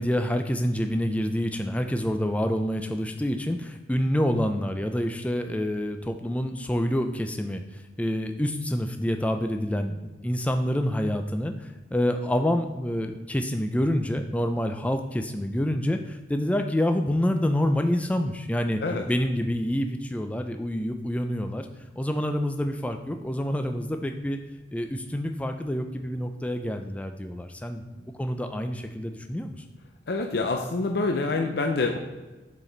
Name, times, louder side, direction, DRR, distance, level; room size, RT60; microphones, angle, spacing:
voice 1, 0.0-7.6 8.0-21.7 22.0-24.4 24.7-27.8 28.2-29.6, equal, 10° left, 6 dB, 0.3 m, -27 dB
voice 2, 30.1-32.0, left 3 dB, 65° left, 3 dB, 0.5 m, -26 dB
7.4 x 4.1 x 3.9 m, 1.2 s
head